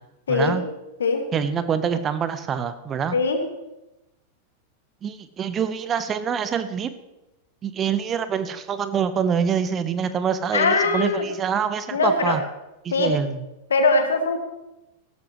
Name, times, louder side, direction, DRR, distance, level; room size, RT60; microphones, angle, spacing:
voice 1, 0.3-0.6 1.3-3.2 5.0-6.9 7.6-12.4 12.8-13.4, right 7 dB, 30° right, 11 dB, 0.9 m, -25 dB
voice 2, 10.5-11.3 11.9-12.4 12.9-13.1 13.7-14.4, left 3 dB, 75° left, 5 dB, 1.9 m, -21 dB
16.0 x 13.0 x 3.1 m, 0.98 s
figure-of-eight pair, 90°, 0 cm